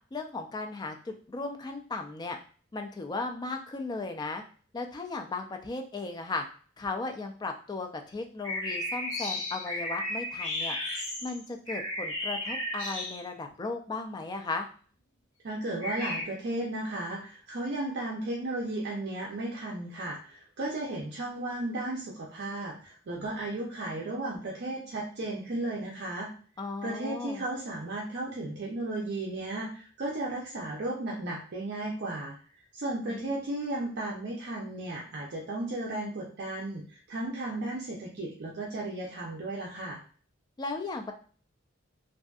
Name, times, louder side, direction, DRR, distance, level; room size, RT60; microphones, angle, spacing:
voice 1, 0.1-2.4 2.7-4.4 4.7-6.4 6.8-10.8 11.2-14.7 26.6-27.5 33.1-33.3 40.6-41.1, left 3 dB, 20° left, 4 dB, 0.3 m, -36 dB
sound 1, 8.4-13.5 15.8-16.2, left 1 dB, 70° left, 1.4 m, -34 dB
voice 2, 15.4-26.3 26.8-32.3 32.7-40.0, right 2 dB, 55° right, -3 dB, 0.5 m, -34 dB
2.6 x 2.4 x 2.3 m, 0.42 s
head